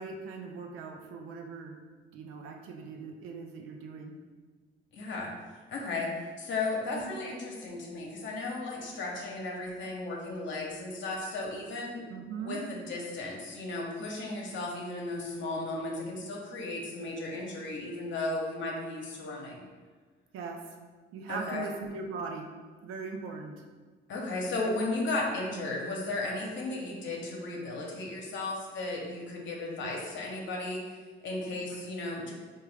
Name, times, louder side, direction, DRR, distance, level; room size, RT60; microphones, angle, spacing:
voice 1, 0.0-1.8 2.1-4.1 6.9-7.1 12.1-12.6 20.3-20.6 21.1-22.5 22.8-23.5 29.8-30.1 31.7-31.8, right 4 dB, 85° right, 2 dB, 0.5 m, -40 dB
voice 2, 4.9-5.3 5.7-12.0 12.4-19.6 21.3-21.7 24.1-30.8 31.2-32.3, left 2 dB, 65° left, -1 dB, 0.6 m, -35 dB
3.5 x 2.1 x 3.3 m, 1.4 s
cardioid pair, 80°, 21 cm